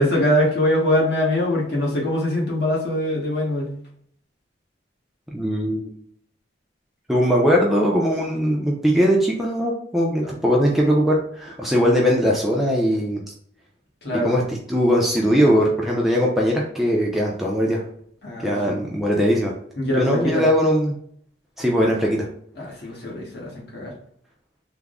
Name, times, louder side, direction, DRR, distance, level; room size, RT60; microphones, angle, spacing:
voice 1, 0.0-3.7 14.0-14.3 18.2-18.8 19.8-20.4 22.6-23.9, left 1 dB, 60° left, -3 dB, 1.1 m, -23 dB
voice 2, 5.3-5.9 7.1-13.2 14.2-14.4 14.7-17.8 18.4-19.5 20.0-20.9 21.6-22.3, equal, ahead, -3 dB, 0.4 m, -20 dB
3.4 x 2.0 x 3.5 m, 0.63 s
head